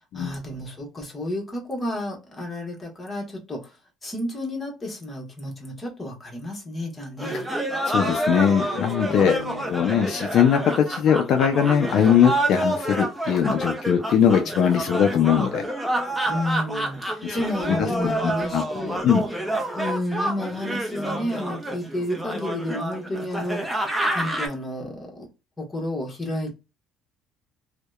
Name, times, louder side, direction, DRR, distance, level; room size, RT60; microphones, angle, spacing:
voice 1, 0.1-3.7 4.0-7.4 9.1-9.9 16.3-19.0 19.7-23.9 24.1-25.3 25.6-26.5, left 1 dB, 20° left, 1.1 m, -31 dB
sound 1, 7.2-24.5, right 1 dB, 5° right, 0.6 m, -28 dB
voice 2, 7.9-9.4 9.7-15.7 17.2-18.6 19.0-19.2, left 8 dB, 60° left, 0.3 m, -21 dB
2.7 x 2.1 x 2.2 m
cardioid pair, 110°, 0 cm